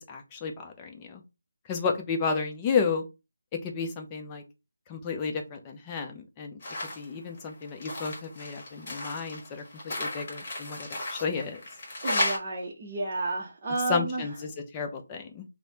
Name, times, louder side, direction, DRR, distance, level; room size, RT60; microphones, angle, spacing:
voice 1, 0.1-1.2 1.7-3.0 3.6-4.4 4.9-6.6 7.0-11.6 13.9-15.4, left 5 dB, 20° left, 3 dB, 0.5 m, -32 dB
sound 1, 6.6-7.0 7.4-12.4, left 1 dB, 35° left, 1.3 m, -34 dB
voice 2, 12.0-14.3, right 2 dB, 30° right, -2 dB, 0.6 m, -31 dB
3.1 x 2.0 x 2.7 m, 0.26 s
figure-of-eight pair, 160°, 0 cm